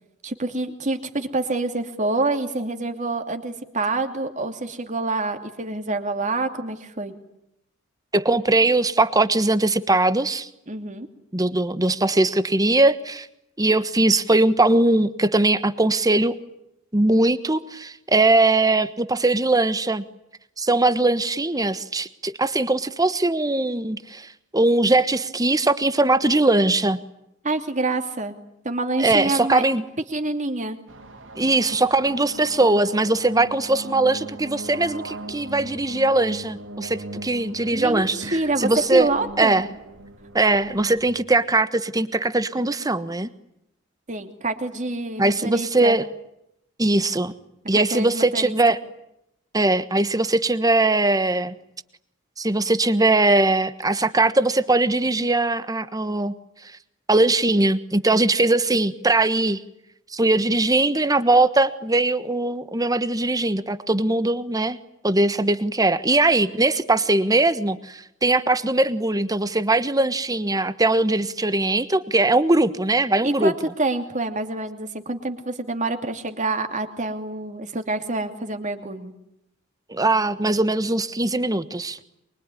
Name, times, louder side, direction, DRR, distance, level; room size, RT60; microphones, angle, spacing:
voice 1, 0.2-7.1 10.7-11.1 27.4-28.3 28.6-29.6 30.1-30.8 37.7-39.6 44.1-46.0 47.8-48.6 73.2-79.1, right 2 dB, 40° right, 6 dB, 2.8 m, -27 dB
voice 2, 8.1-10.5 11.3-13.3 13.6-16.4 16.9-20.0 20.6-27.0 29.0-29.8 31.4-39.1 39.4-39.7 40.3-43.3 45.2-46.0 46.8-47.3 47.7-48.8 49.5-51.5 52.4-56.3 57.1-59.6 60.1-64.8 65.0-73.5 79.9-82.0, right 2 dB, 20° right, 12 dB, 1.3 m, -20 dB
sound 1, 30.9-41.1, right 1 dB, 70° right, 3.8 m, -39 dB
24.0 x 24.0 x 10.0 m, 0.82 s
head